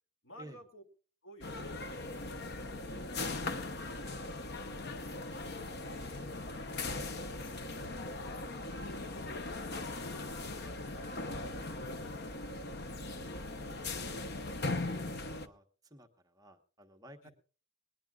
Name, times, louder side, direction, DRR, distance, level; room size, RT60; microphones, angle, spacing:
voice 1, 0.2-0.8 1.2-3.1 3.8-7.4 8.3-12.7 13.8-14.0 15.1-15.2 17.2-17.3, equal, 70° left, 5 dB, 2.7 m, -57 dB
sound 1, 1.4-15.5, left 2 dB, 50° left, 0.8 m, -39 dB
voice 2, 13.4-14.6 14.9-15.0 15.4-17.3, right 1 dB, 20° right, 4 dB, 1.2 m, -56 dB
20.5 x 19.0 x 2.4 m, 0.40 s
head